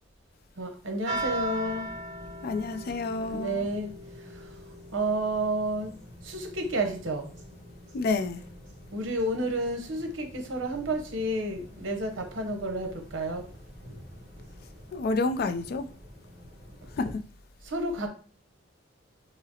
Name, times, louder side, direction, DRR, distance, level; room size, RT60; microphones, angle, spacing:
voice 1, 0.6-1.9 3.3-3.9 4.2-4.5 4.9-6.0 6.2-7.3 8.9-13.4 17.7-18.1, right 1 dB, 85° right, 0.8 m, -30 dB
sound 1, 1.0-17.0, right 1 dB, 40° right, 1.3 m, -42 dB
voice 2, 2.4-3.7 7.9-8.4 14.9-15.9 16.9-17.2, left 3 dB, 55° left, 0.3 m, -29 dB
4.9 x 2.0 x 2.8 m
head